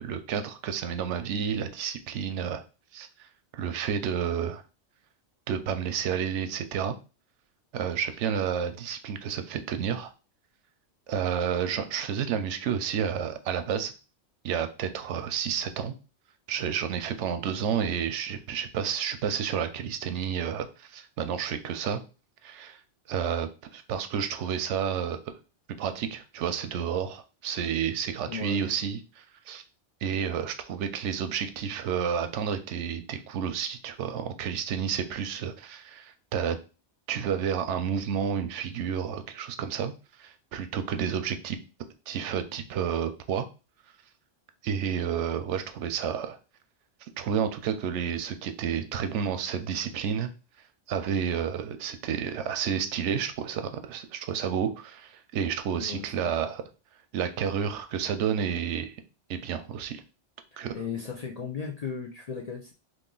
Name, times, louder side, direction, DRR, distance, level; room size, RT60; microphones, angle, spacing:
voice 1, 0.0-2.6 2.9-3.1 3.5-4.6 5.5-6.9 7.7-10.1 11.1-13.9 14.4-15.9 16.5-22.0 22.4-22.8 23.1-25.3 25.8-29.6 30.0-36.6 37.1-39.9 40.2-41.6 42.1-43.5 44.6-46.4 47.2-50.3 50.9-56.6 57.1-59.0 59.3-60.0 60.6-60.7, right 8 dB, 85° right, 9 dB, 0.9 m, -30 dB
voice 2, 28.3-28.6 55.8-56.3 60.7-62.7, left 6 dB, 55° left, 0 dB, 0.4 m, -36 dB
3.1 x 2.5 x 3.7 m, 0.32 s
omnidirectional pair, 1.2 m